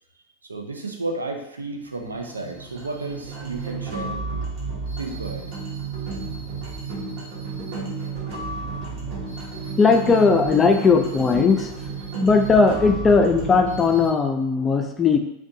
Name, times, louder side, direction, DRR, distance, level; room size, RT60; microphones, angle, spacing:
voice 1, 0.5-4.5 5.0-5.5, right 2 dB, 90° right, 2 dB, 0.3 m, -32 dB
sound 1, 1.9-14.1, right 4 dB, 55° right, 0.8 m, -32 dB
sound 2, 3.2-3.7 4.6-5.5 6.0-6.3 6.7-6.9 7.2-7.3 7.5-7.7 8.2-10.0 10.4-13.7, equal, 15° right, 0.7 m, -43 dB
voice 2, 9.8-11.7 12.2-15.2, left 4 dB, 20° left, 5 dB, 0.3 m, -18 dB
2.6 x 2.2 x 2.6 m, 0.81 s
hypercardioid pair, 90°, 0 cm